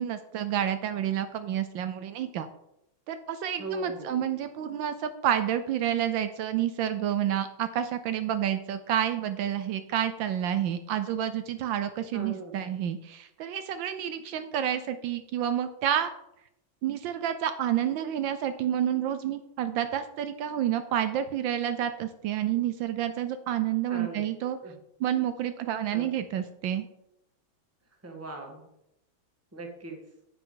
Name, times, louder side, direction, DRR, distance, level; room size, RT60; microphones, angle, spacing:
voice 1, 0.0-2.5 3.1-16.1 16.8-24.6 25.0-26.9, right 10 dB, 75° right, 10 dB, 1.3 m, -29 dB
voice 2, 3.6-4.2 12.1-12.6 23.9-24.2 24.6-24.7 25.9-26.1 28.0-28.7 29.5-30.0, right 3 dB, 10° right, 2 dB, 1.2 m, -38 dB
9.7 x 7.8 x 3.9 m, 0.82 s
omnidirectional pair, 2.2 m